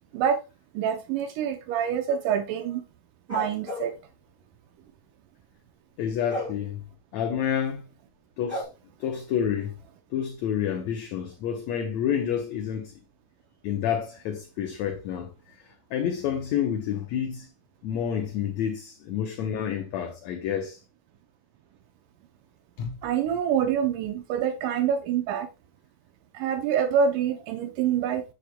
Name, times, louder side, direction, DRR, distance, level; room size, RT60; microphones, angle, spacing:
voice 1, 0.7-2.8 3.3-3.9 23.0-25.5 26.3-28.2, right 8 dB, 80° right, 2.2 m, -26 dB
sound 1, 3.3-3.9 6.3-6.6 8.5-8.6, left 1 dB, 15° right, 4.2 m, -32 dB
voice 2, 6.0-6.8 7.1-7.8 8.4-8.7 9.0-9.7 10.1-12.9 13.6-15.3 15.6-17.5 17.8-20.8 22.8-23.0, left 9 dB, 70° left, 2.0 m, -29 dB
9.6 x 7.9 x 2.2 m
omnidirectional pair, 3.7 m